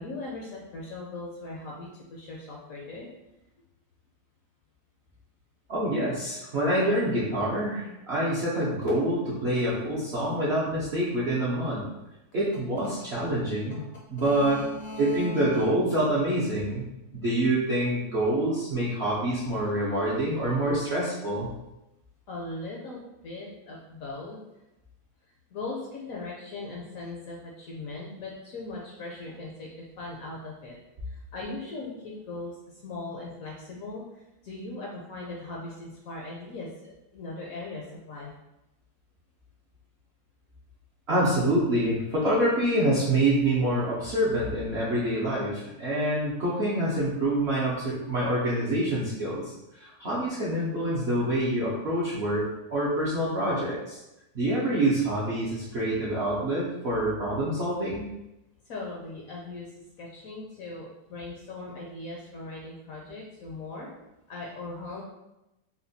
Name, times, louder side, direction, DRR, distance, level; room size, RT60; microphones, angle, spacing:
voice 1, 0.0-3.1 14.2-15.6 22.3-24.4 25.5-30.8 31.1-38.3 58.7-63.9 64.3-65.0, left 2 dB, 70° left, -3 dB, 0.8 m, -39 dB
voice 2, 5.7-11.9 12.3-13.8 14.1-14.6 15.0-16.8 17.1-21.5 41.1-54.0 54.3-58.1, right 1 dB, 65° right, -8 dB, 0.6 m, -26 dB
4.1 x 2.2 x 2.6 m, 0.93 s
omnidirectional pair, 1.9 m